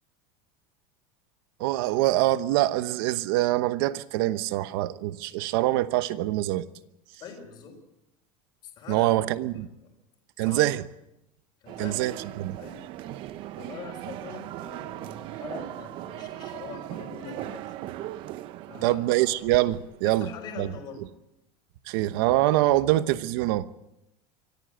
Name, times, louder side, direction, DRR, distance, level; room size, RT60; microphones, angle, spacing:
voice 1, 1.6-6.7 8.9-9.7 10.4-10.8 11.8-12.6 18.8-20.3 20.6-20.7 21.9-23.7, right 16 dB, 70° right, 1.0 m, -24 dB
voice 2, 7.2-7.8 8.6-9.2 9.5-9.9 10.4-10.6 11.6-12.3 12.6-17.8 18.7-19.0 20.0-21.1, left 7 dB, 35° left, 4.3 m, -43 dB
sound 1, 11.7-20.3, right 14 dB, 45° right, 0.8 m, -39 dB
24.5 x 14.5 x 7.9 m
cardioid pair, 165°, 13 cm